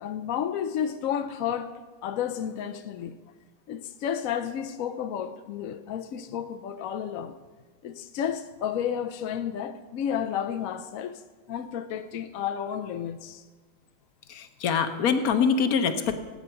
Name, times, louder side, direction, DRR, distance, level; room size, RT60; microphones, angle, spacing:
voice 1, 0.0-1.7 2.0-3.2 3.7-7.3 7.8-11.2 11.5-13.4, left 9 dB, 75° left, 9 dB, 0.7 m, -31 dB
voice 2, 14.3-16.2, left 6 dB, 60° left, 8 dB, 1.1 m, -24 dB
16.0 x 8.8 x 5.6 m, 1.3 s
omnidirectional pair, 2.1 m